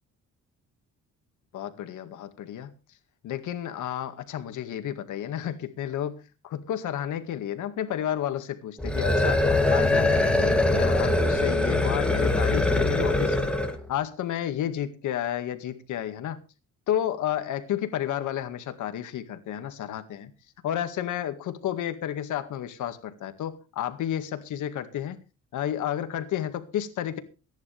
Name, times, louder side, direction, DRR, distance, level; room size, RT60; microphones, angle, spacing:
voice 1, 1.5-2.7 3.2-6.1 6.5-13.5 13.9-16.4 16.9-20.3 20.6-25.2 25.5-27.2, left 10 dB, 80° left, 2.0 m, -31 dB
sound 1, 8.8-13.8, left 2 dB, 5° left, 2.7 m, -23 dB
22.5 x 10.5 x 3.5 m
cardioid pair, 90°, 30 cm